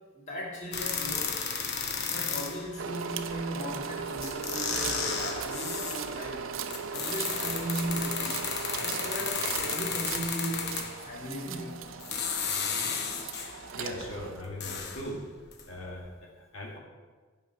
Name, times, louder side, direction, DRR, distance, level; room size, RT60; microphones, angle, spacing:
voice 1, 0.2-1.4 2.1-6.6 6.9-8.4 8.8-12.1, right 1 dB, 35° left, -3 dB, 2.0 m, -37 dB
sound 1, 0.7-2.7 3.8-3.9 4.2-6.1 6.7-11.1 11.9-13.6 14.1-15.7 16.0-16.1, left 6 dB, 55° left, 0.9 m, -33 dB
sound 2, 2.8-14.4, right 6 dB, 70° right, 0.6 m, -38 dB
voice 2, 13.8-15.2 15.7-16.8, left 1 dB, 75° left, -1 dB, 2.0 m, -39 dB
9.4 x 5.3 x 5.9 m, 1.4 s
head